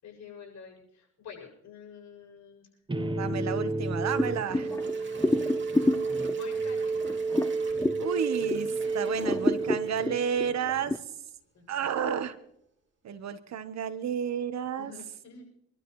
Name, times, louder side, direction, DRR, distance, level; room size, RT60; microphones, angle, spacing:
voice 1, 0.0-2.7 6.3-7.1 11.5-12.0 14.8-15.5, left 6 dB, 65° left, -1 dB, 7.4 m, -47 dB
sound 1, 2.9-10.8, right 3 dB, 15° right, 1.1 m, -31 dB
voice 2, 3.0-4.7 8.0-11.0 11.7-12.4 13.0-14.9, right 8 dB, 60° right, 11 dB, 1.2 m, -31 dB
Gurgling / Toilet flush / Trickle dribble, 3.8-10.9 11.3-11.4 11.9-12.0, right 4 dB, 40° right, 2.9 m, -50 dB
sound 2, 4.2-8.8 9.1-11.0, left 2 dB, 10° left, 0.6 m, -30 dB
26.0 x 12.5 x 3.2 m, 0.78 s
cardioid pair, 90°, 30 cm